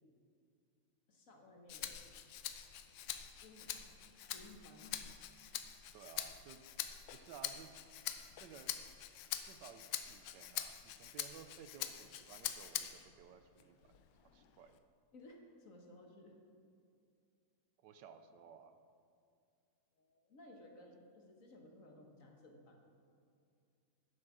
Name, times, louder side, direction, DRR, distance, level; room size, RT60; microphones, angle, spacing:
voice 1, 1.1-2.0 2.9-3.1 3.4-3.9 4.2-5.0 15.1-16.4 19.9-22.8, left 1 dB, 50° left, 1 dB, 1.5 m, -58 dB
Rattle (instrument), 1.7-13.1 13.6-14.8, left 10 dB, 85° left, 1.3 m, -45 dB
voice 2, 5.9-6.6 7.1-7.7 8.4-8.7 9.4-14.8 17.8-18.7, right 7 dB, 75° right, 9 dB, 1.2 m, -56 dB
10.5 x 7.4 x 6.1 m, 2.4 s
omnidirectional pair, 2.0 m